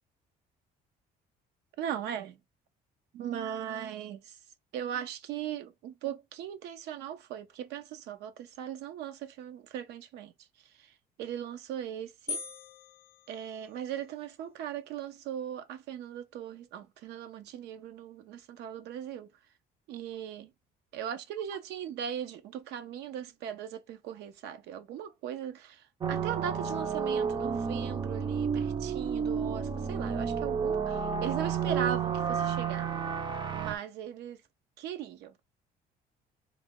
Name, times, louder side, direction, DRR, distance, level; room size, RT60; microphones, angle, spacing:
voice 1, 1.8-2.4 3.1-4.4 4.7-10.3 10.8-10.9 11.2-12.4 13.3-19.3 19.9-20.5 20.9-32.9 33.5-34.4 34.8-35.3, right 9 dB, 80° right, 0.6 m, -38 dB
sound 1, 12.3-14.1, left 5 dB, 60° left, 0.4 m, -41 dB
sound 2, 26.0-33.8, right 6 dB, 25° right, 0.5 m, -31 dB
3.3 x 2.2 x 3.6 m
cardioid pair, 110°, 17 cm